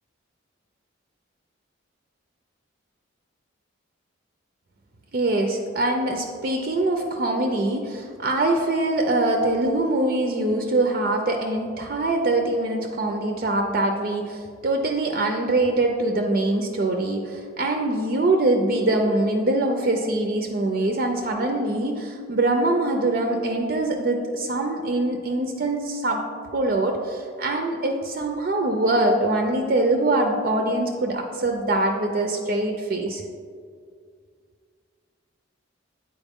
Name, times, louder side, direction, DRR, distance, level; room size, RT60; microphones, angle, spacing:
voice 1, 5.1-26.2 26.5-33.2, right 2 dB, 45° right, 3 dB, 0.4 m, -23 dB
8.1 x 4.4 x 3.5 m, 2.1 s
head